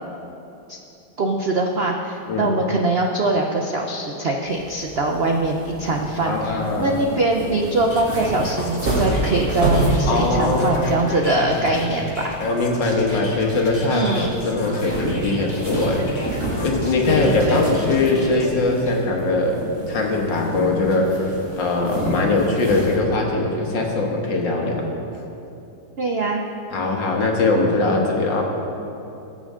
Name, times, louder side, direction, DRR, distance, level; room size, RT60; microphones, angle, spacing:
voice 1, 1.2-12.4 13.9-14.3 17.1-17.6 26.0-26.4 27.9-28.1, right 2 dB, 75° right, 2 dB, 0.5 m, -22 dB
sound 1, 4.5-23.0, right 1 dB, 50° right, 3.3 m, -29 dB
voice 2, 6.2-7.0 10.1-11.1 11.4-11.8 12.4-16.1 16.6-19.6 19.9-21.3 21.6-24.9 26.7-28.4, left 3 dB, 70° left, 0 dB, 2.1 m, -21 dB
sound 2, 7.9-18.5, left 1 dB, 20° left, 2.0 m, -35 dB
20.0 x 8.7 x 3.7 m, 2.9 s
omnidirectional pair, 2.1 m